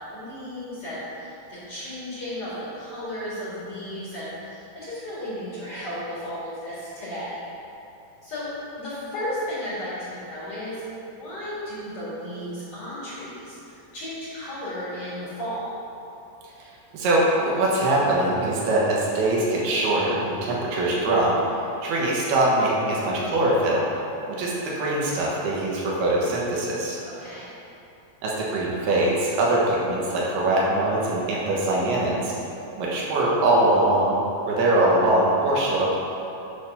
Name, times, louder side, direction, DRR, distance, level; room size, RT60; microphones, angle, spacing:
voice 1, 0.0-7.4 8.2-8.5 8.8-15.8 27.0-27.5, equal, 45° left, -11 dB, 2.4 m, -34 dB
voice 2, 16.9-21.4 21.8-23.9 24.3-27.0 28.2-32.3 32.8-36.0, right 1 dB, 80° right, -5 dB, 3.1 m, -22 dB
9.7 x 3.5 x 5.5 m, 2.8 s
omnidirectional pair, 4.5 m